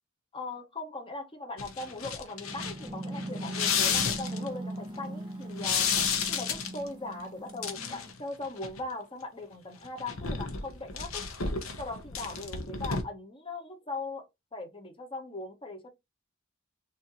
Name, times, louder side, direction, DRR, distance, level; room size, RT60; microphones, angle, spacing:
voice 1, 0.3-5.9 6.2-11.2 11.8-15.9, left 2 dB, 25° left, 1.1 m, -39 dB
sound 1, 1.6-4.5 5.6-6.9 7.5-8.2 8.4-8.8 9.8-13.0, left 6 dB, 75° left, 1.0 m, -31 dB
sound 2, 2.5-8.1, right 1 dB, 20° right, 0.6 m, -40 dB
6.1 x 2.8 x 3.0 m
head